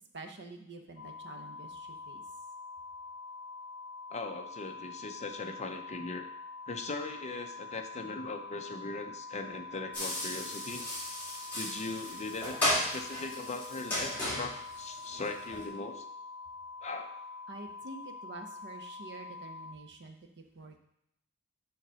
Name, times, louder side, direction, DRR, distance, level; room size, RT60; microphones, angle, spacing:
voice 1, 0.1-2.2 17.5-20.8, right 3 dB, 55° right, 5 dB, 0.9 m, -47 dB
sound 1, 1.0-19.7, left 4 dB, 60° left, 1.7 m, -45 dB
voice 2, 4.1-6.3 6.7-10.8 11.5-16.1 16.8-17.1, left 3 dB, 30° left, 5 dB, 0.7 m, -39 dB
sound 2, 9.9-15.7, equal, 10° left, 3.4 m, -35 dB
6.9 x 4.0 x 6.2 m, 0.77 s
head